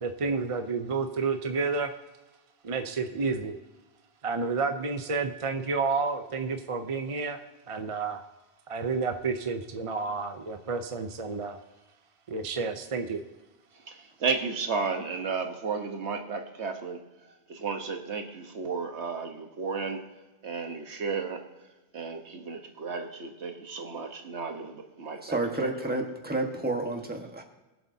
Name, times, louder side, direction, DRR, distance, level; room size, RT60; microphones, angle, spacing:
voice 1, 0.0-1.9 2.6-3.6 4.2-7.4 7.7-8.2 8.7-11.6 12.3-13.2, right 4 dB, 35° right, 6 dB, 0.6 m, -30 dB
voice 2, 13.9-17.0 17.5-20.1 20.4-21.4 21.9-25.9, right 5 dB, 85° right, 4 dB, 1.5 m, -33 dB
voice 3, 25.2-27.4, right 2 dB, 10° right, 2 dB, 1.3 m, -30 dB
22.0 x 7.7 x 2.8 m, 1.1 s
omnidirectional pair, 1.1 m